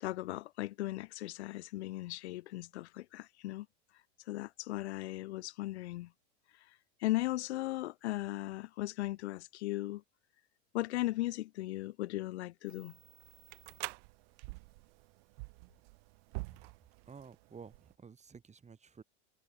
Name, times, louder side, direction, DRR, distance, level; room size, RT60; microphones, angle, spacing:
voice 1, 0.0-3.7 4.3-6.1 6.5-10.0 10.7-13.0, left 17 dB, 85° left, 1.0 m, -37 dB
sound 1, 12.7-17.9, right 30 dB, 65° right, 4.2 m, -47 dB
voice 2, 17.1-19.0, right 6 dB, 20° right, 4.4 m, -52 dB
supercardioid pair, 110°, 32 cm